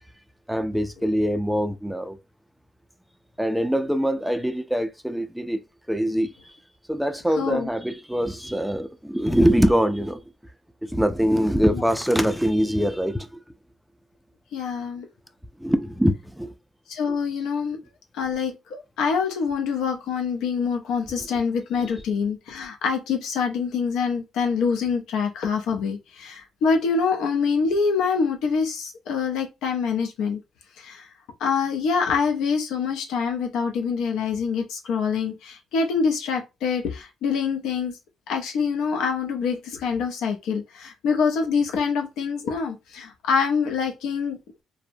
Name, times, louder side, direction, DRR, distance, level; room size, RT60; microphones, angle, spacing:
voice 1, 0.5-2.2 3.4-5.6 5.9-6.5 6.9-10.2 10.8-13.4 15.6-16.5, equal, ahead, 0.3 m, -23 dB
voice 2, 7.4-7.7 11.7-11.8 14.5-15.1 16.9-17.8 18.1-30.4 30.8-31.1 31.4-38.0 38.3-44.4, left 5 dB, 90° left, 0.5 m, -25 dB
2.6 x 2.0 x 2.6 m
cardioid pair, 90°, 0 cm